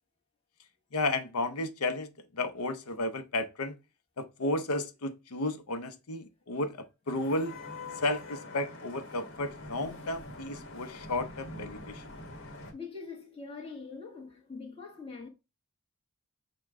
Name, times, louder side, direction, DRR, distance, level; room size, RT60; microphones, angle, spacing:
voice 1, 0.9-3.8 4.2-7.6 8.0-12.0, left 2 dB, 80° left, 0.7 m, -33 dB
Vehicle horn car horn honking / Traffic noise roadway noise, 7.1-12.7, left 2 dB, 55° left, 1.4 m, -45 dB
voice 2, 12.7-15.3, left 4 dB, 25° left, 1.3 m, -43 dB
6.5 x 2.3 x 3.6 m
head